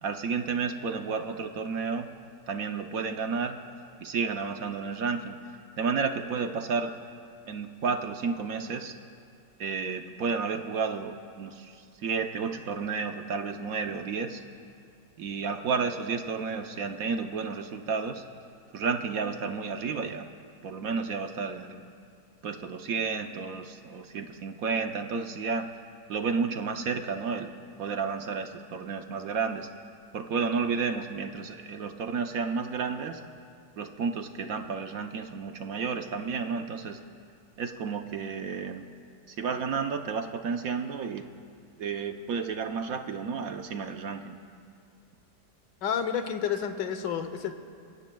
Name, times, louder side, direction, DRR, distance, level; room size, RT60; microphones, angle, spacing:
voice 1, 0.0-2.1 2.5-3.6 4.0-5.4 5.8-6.9 7.5-8.9 9.6-14.4 15.2-18.2 18.7-20.3 20.6-21.8 22.4-25.7 26.1-27.5 27.8-29.7 30.1-33.2 33.8-37.0 37.6-38.9 39.3-41.2 41.8-44.3, right 5 dB, 60° right, 6 dB, 1.1 m, -31 dB
voice 2, 45.8-47.5, left 8 dB, 90° left, 8 dB, 1.6 m, -30 dB
29.0 x 16.5 x 2.3 m, 2.3 s
omnidirectional pair, 1.8 m